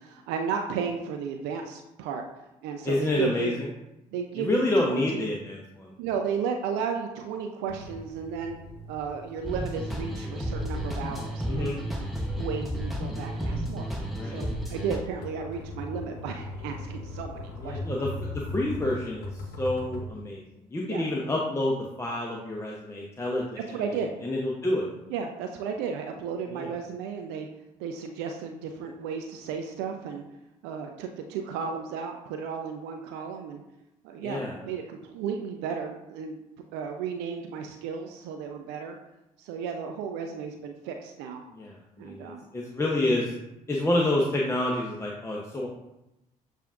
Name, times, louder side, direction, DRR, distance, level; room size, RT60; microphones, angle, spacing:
voice 1, 0.0-2.2 2.6-3.6 4.1-5.2 6.0-8.6 8.9-12.1 12.4-13.9 14.2-17.8 20.9-21.0 23.6-24.1 25.1-27.5 27.8-30.2 30.6-33.6 34.0-36.4 36.7-38.9 39.4-41.4 42.0-42.4, right 6 dB, 70° right, 4 dB, 0.4 m, -34 dB
voice 2, 2.9-3.7 4.4-5.9 11.5-11.8 14.2-14.4 17.6-20.4 20.7-24.8 26.5-26.7 34.2-34.6 41.5-43.3 43.7-45.7, left 1 dB, 15° left, -3 dB, 0.7 m, -28 dB
sound 1, 7.7-20.1, left 1 dB, 65° left, 0.8 m, -40 dB
sound 2, 9.4-15.0, equal, ahead, 1.0 m, -32 dB
6.9 x 2.4 x 2.5 m, 0.90 s
hypercardioid pair, 50°, 18 cm